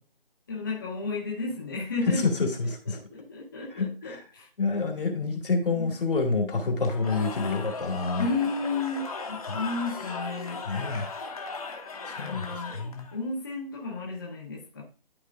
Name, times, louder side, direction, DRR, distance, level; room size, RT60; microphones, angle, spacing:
voice 1, 0.5-2.2 2.6-4.5 5.7-5.9 8.2-11.1 11.9-12.8 13.1-14.8, left 3 dB, 20° left, -5 dB, 1.0 m, -33 dB
voice 2, 2.1-3.0 3.7-4.2 4.6-8.3 9.5-9.6 10.7-11.1 12.1-12.5 12.7-13.0, left 4 dB, 60° left, 2 dB, 2.2 m, -28 dB
Cheering / Crowd, 6.8-13.2, left 4 dB, 35° left, 1.2 m, -37 dB
12.0 x 4.3 x 2.5 m, 0.37 s
hypercardioid pair, 170°, 30 cm